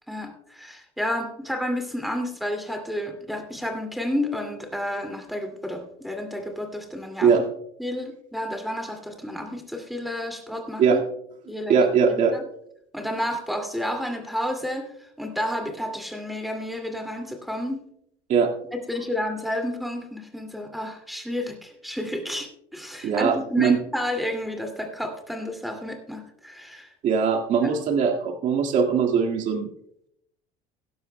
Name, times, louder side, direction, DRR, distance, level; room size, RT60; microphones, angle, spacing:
voice 1, 0.1-7.3 7.8-11.0 11.5-12.4 12.9-14.9 15.2-17.8 18.7-26.9 27.6-27.7, left 1 dB, ahead, 4 dB, 2.4 m, -31 dB
voice 2, 11.7-12.4 18.3-18.5 23.0-23.8 27.0-29.7, right 6 dB, 55° right, 2 dB, 1.9 m, -21 dB
17.0 x 12.0 x 2.2 m, 0.73 s
cardioid pair, 115°, 16 cm